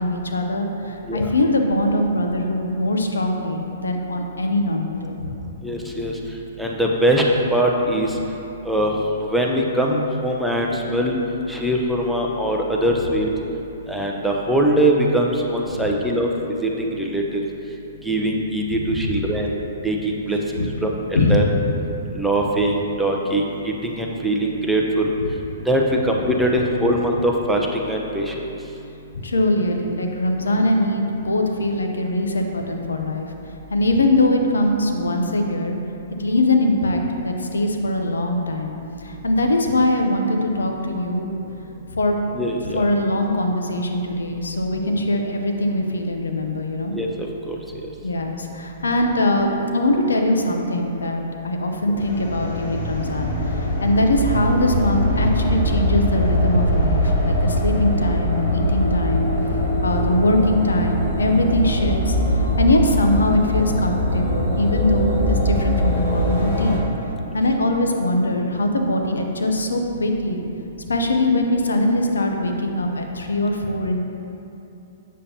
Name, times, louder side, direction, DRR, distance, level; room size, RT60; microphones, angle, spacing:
voice 1, 0.0-5.4 15.8-15.9 18.9-19.1 20.6-20.7 21.1-21.7 29.2-33.3 33.7-35.8 36.2-38.7 39.0-41.3 41.9-42.2 42.7-47.0 48.0-59.3 59.8-66.8 67.3-70.4 70.9-74.0, left 1 dB, 80° left, 3 dB, 0.7 m, -22 dB
voice 2, 5.6-6.1 6.6-7.2 7.5-8.1 8.7-8.9 9.2-11.2 11.5-13.3 13.9-16.3 16.6-17.4 18.0-19.5 19.8-21.5 22.1-25.1 25.7-28.3 42.3-42.8 46.9-47.1 47.5-47.6 51.9-52.0, right 1 dB, ahead, -1 dB, 0.7 m, -22 dB
sound 1, 52.0-66.8, equal, 60° left, 1.5 m, -22 dB
7.4 x 6.7 x 2.9 m, 2.8 s
hypercardioid pair, 120°, 0 cm